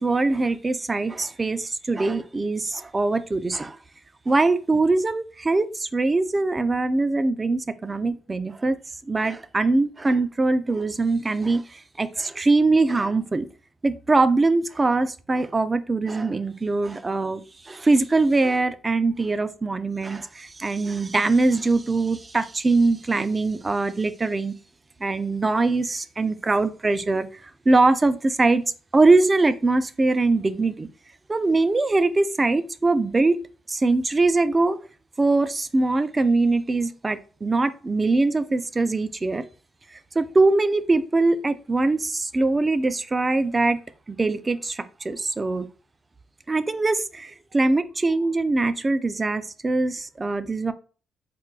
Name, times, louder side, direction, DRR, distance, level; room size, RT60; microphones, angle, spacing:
voice 1, 0.0-3.8 4.3-8.8 9.1-13.5 13.8-24.5 25.0-27.3 27.7-28.6 28.9-30.9 31.3-33.4 33.7-34.8 35.2-39.4 40.2-43.8 44.1-45.7 46.5-50.7, right 3 dB, 25° right, 13 dB, 0.3 m, -22 dB
4.3 x 2.2 x 2.3 m, 0.38 s
cardioid pair, 90°, 0 cm